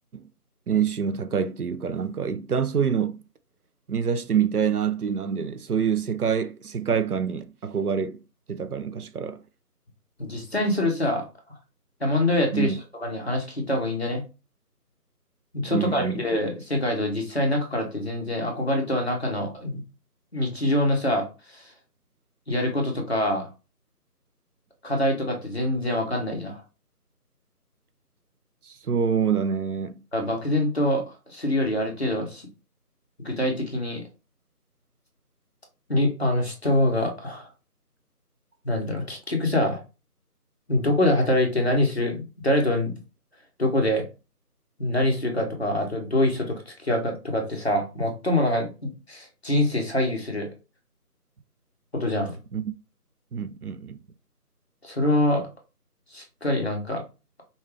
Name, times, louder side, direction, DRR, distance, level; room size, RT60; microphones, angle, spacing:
voice 1, 0.7-3.2 3.9-8.2 8.5-9.4 12.5-12.8 15.7-16.2 28.6-29.9 52.5-52.7 53.3-54.0, right 7 dB, 70° right, 0.6 m, -26 dB
voice 2, 10.2-11.2 12.0-12.7 13.0-14.2 15.5-19.8 20.3-21.3 21.5-21.6 22.5-23.5 24.8-26.6 30.1-31.0 31.3-32.4 33.2-34.0 35.9-37.5 38.6-39.8 40.7-43.0 43.6-44.0 44.8-50.5 51.9-52.4 54.8-55.4 56.1-57.0, left 1 dB, 40° left, 1.1 m, -25 dB
5.3 x 2.3 x 3.3 m
figure-of-eight pair, 175°, 47 cm